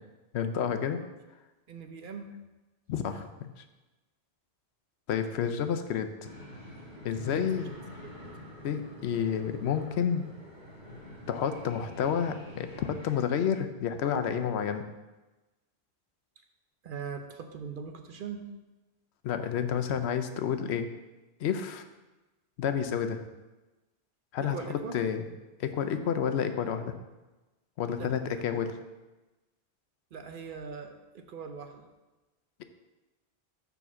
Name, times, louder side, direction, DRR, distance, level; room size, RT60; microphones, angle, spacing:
voice 1, 0.3-1.0 2.9-3.6 5.1-6.1 7.0-7.7 8.6-10.3 11.3-14.9 19.2-20.9 21.4-21.9 22.6-23.2 24.3-25.3 25.6-26.9 27.8-28.7, left 8 dB, 85° left, 8 dB, 0.9 m, -30 dB
voice 2, 1.7-2.3 7.2-8.1 16.8-18.4 24.4-25.0 28.0-28.6 30.1-31.9, right 5 dB, 55° right, 6 dB, 0.8 m, -41 dB
sound 1, 6.2-13.2, left 1 dB, 50° left, 2.0 m, -47 dB
7.2 x 3.9 x 6.0 m, 1.1 s
omnidirectional pair, 1.1 m